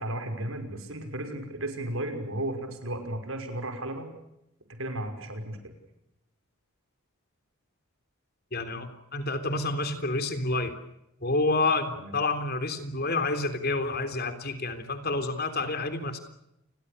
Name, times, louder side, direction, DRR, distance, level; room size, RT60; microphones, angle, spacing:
voice 1, 0.0-4.1 4.8-5.7 11.9-12.1, right 1 dB, 70° right, 6 dB, 5.8 m, -34 dB
voice 2, 8.5-10.7 11.2-16.2, left 3 dB, 45° left, 8 dB, 3.5 m, -29 dB
29.5 x 22.5 x 6.9 m, 0.84 s
head